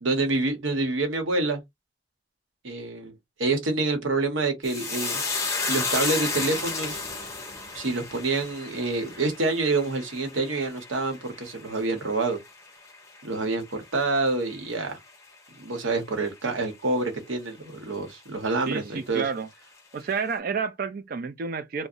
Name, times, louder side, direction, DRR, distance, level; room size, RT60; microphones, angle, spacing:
voice 1, 0.0-1.6 2.6-3.1 3.4-5.2 5.7-7.0 7.7-12.4 13.2-15.0 15.6-19.2, right 3 dB, 85° right, 0.9 m, -27 dB
sound 1, 4.6-13.2 13.5-14.2 14.5-14.7, left 3 dB, 15° left, 0.8 m, -32 dB
voice 2, 18.7-19.5 19.9-21.9, right 5 dB, 50° right, 0.4 m, -30 dB
2.4 x 2.0 x 2.7 m
head